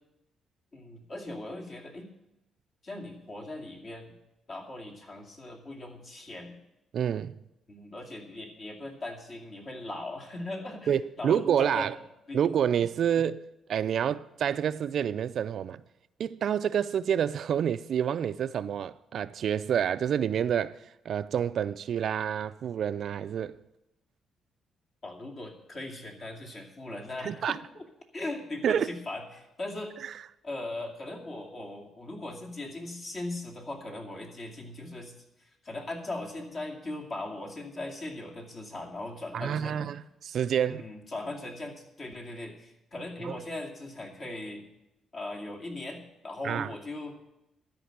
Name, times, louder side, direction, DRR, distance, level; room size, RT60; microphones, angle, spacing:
voice 1, 0.7-2.1 2.8-4.1 4.5-6.6 7.7-11.9 12.3-12.4 25.0-27.8 28.1-30.0 30.4-35.1 35.4-39.9 40.6-44.7 45.1-47.2, left 2 dB, 45° left, 2.4 m, -39 dB
voice 2, 6.9-7.4 10.9-11.9 12.3-15.8 16.2-20.8 21.1-23.6 27.2-27.6 28.6-28.9 39.3-40.9 43.2-43.4 46.4-46.7, right 8 dB, 65° right, 0.4 m, -28 dB
13.0 x 5.2 x 9.1 m
cardioid pair, 90°, 0 cm